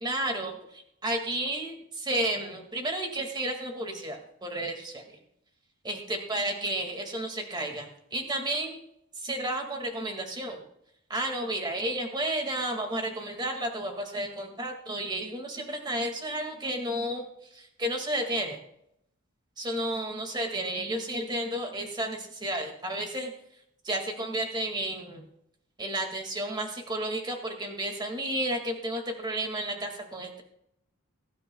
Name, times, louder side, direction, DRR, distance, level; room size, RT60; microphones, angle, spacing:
voice 1, 0.0-5.0 5.8-6.0 6.3-8.8 9.2-10.6 11.1-17.2 17.5-18.6 19.6-23.3 23.8-25.2 25.8-30.4, right 1 dB, 20° right, 2 dB, 2.0 m, -32 dB
21.5 x 11.0 x 2.3 m, 0.77 s
head